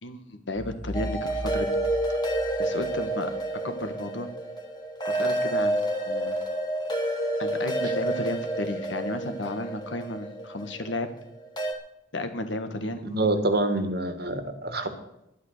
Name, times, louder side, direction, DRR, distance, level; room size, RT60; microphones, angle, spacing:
voice 1, 0.0-1.8 2.6-3.3 3.6-4.3 5.1-5.8 6.0-6.4 7.4-11.1 12.1-13.3, left 1 dB, 70° left, 8 dB, 1.6 m, -33 dB
sound 1, 0.6-3.4, left 1 dB, 5° right, 0.5 m, -38 dB
sound 2, 0.9-11.7, right 1 dB, 25° left, 2.0 m, -29 dB
voice 2, 13.0-14.9, right 2 dB, 55° right, 8 dB, 1.7 m, -26 dB
12.0 x 10.5 x 6.6 m, 0.84 s
head